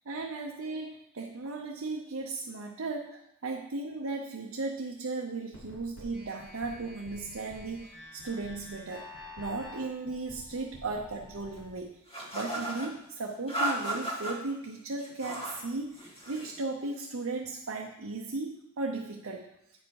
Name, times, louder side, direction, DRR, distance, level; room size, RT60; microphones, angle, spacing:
voice 1, 0.1-9.1 9.4-12.0 12.3-19.5, right 3 dB, 70° right, 0 dB, 0.8 m, -36 dB
sound 1, 5.5-11.7, left 2 dB, 90° left, 3.3 m, -48 dB
sound 2, 12.1-12.9 13.5-14.3 15.0-15.6 15.9-16.5, right 1 dB, 30° left, 1.6 m, -34 dB
9.0 x 5.2 x 4.7 m, 0.77 s
head